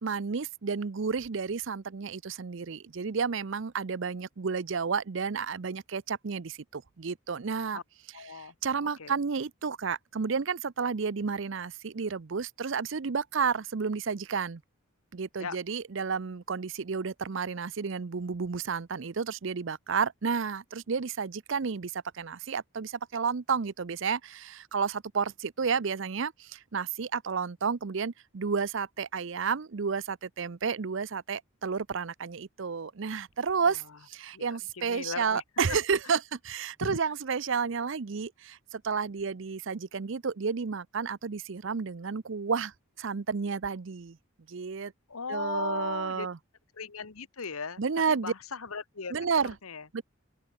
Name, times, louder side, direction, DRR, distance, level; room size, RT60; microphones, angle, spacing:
voice 1, 0.0-7.8 8.3-14.6 15.1-44.2 44.5-44.9 45.3-46.4 47.8-48.3 49.1-49.5 49.9-50.0, right 5 dB, 60° right, 0.6 m, -31 dB
voice 2, 8.1-8.5 9.0-9.1 15.4-15.6 33.6-33.8 34.3-35.4 36.8-37.0 45.1-46.3 46.7-47.8 48.1-49.1 49.6-49.9, left 5 dB, 80° left, 1.2 m, -37 dB
open air
head